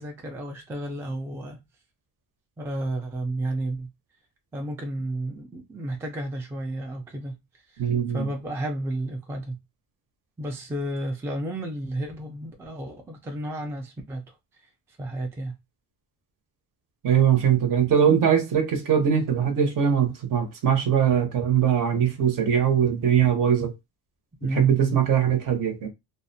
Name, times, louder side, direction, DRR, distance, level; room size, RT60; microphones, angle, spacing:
voice 1, 0.0-1.6 2.6-3.9 4.5-7.3 7.7-7.8 8.1-9.6 10.4-14.2 15.0-15.5 24.4-25.0, right 1 dB, 5° right, 0.3 m, -32 dB
voice 2, 7.8-8.3 17.0-23.7 24.4-25.9, right 8 dB, 55° right, 0.8 m, -21 dB
2.5 x 2.1 x 2.6 m
cardioid pair, 145°, 39 cm